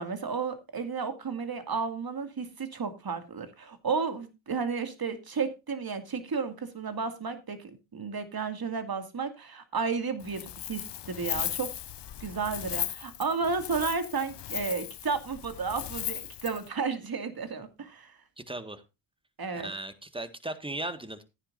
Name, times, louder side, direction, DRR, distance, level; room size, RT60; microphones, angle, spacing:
voice 1, 0.0-11.7 12.2-18.1 19.4-19.7, right 5 dB, 45° right, 2.4 m, -33 dB
Wind, 10.2-16.7, left 11 dB, 55° left, 0.8 m, -37 dB
voice 2, 18.4-18.8 19.5-21.2, right 1 dB, 10° right, 1.7 m, -37 dB
14.5 x 9.8 x 2.6 m
cardioid pair, 60°, 49 cm